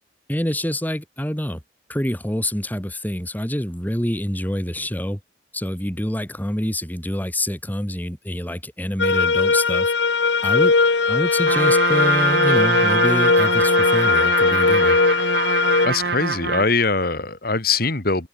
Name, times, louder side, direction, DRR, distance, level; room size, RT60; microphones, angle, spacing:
voice 1, 0.3-1.6 1.9-5.2 5.5-9.9 10.4-10.7 11.1-15.0, left 1 dB, 10° left, 2.7 m, -26 dB
sound 1, 9.0-15.9, left 4 dB, 70° left, 1.0 m, -19 dB
Trumpet, 11.5-16.7, right 4 dB, 60° right, 1.0 m, -23 dB
voice 2, 15.8-18.3, left 3 dB, 50° left, 2.2 m, -22 dB
head